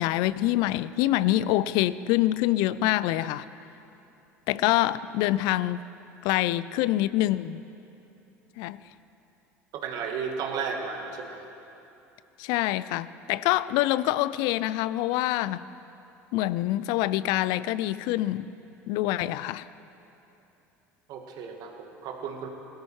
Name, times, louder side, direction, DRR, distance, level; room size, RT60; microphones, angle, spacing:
voice 1, 0.0-3.5 4.5-5.9 6.2-7.6 8.6-8.8 12.4-15.7 16.3-18.5 18.9-19.7, left 15 dB, 65° left, 18 dB, 0.4 m, -25 dB
voice 2, 9.7-11.5 21.1-22.5, right 6 dB, 55° right, 3 dB, 1.7 m, -34 dB
17.5 x 13.0 x 4.7 m, 2.9 s
hypercardioid pair, 70°, 8 cm